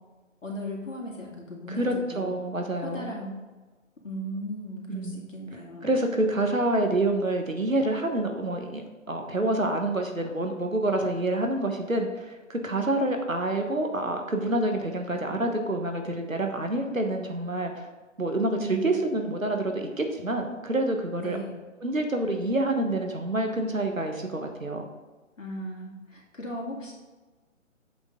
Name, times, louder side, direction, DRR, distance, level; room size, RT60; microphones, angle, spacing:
voice 1, 0.4-2.4 2.8-3.3 4.0-5.9 18.6-18.9 21.2-21.5 25.4-26.9, equal, 75° left, -1 dB, 2.4 m, -37 dB
voice 2, 1.7-3.2 4.9-5.2 5.8-17.9 18.2-21.4 21.8-24.9, right 1 dB, 90° right, 4 dB, 1.4 m, -27 dB
8.0 x 6.4 x 3.7 m, 1.3 s
figure-of-eight pair, 135°, 39 cm